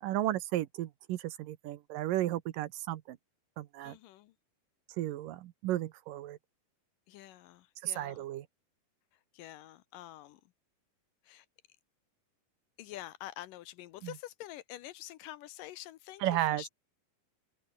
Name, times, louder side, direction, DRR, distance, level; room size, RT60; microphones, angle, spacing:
voice 1, 0.0-3.2 3.6-4.0 5.0-6.4 7.8-8.5 14.0-14.1 16.2-16.6, right 14 dB, 75° right, 2.5 m, -34 dB
voice 2, 3.8-4.3 7.1-8.2 9.3-10.4 11.2-11.5 12.8-16.2 16.5-16.7, left 14 dB, 75° left, 2.3 m, -47 dB
open air
omnidirectional pair, 4.2 m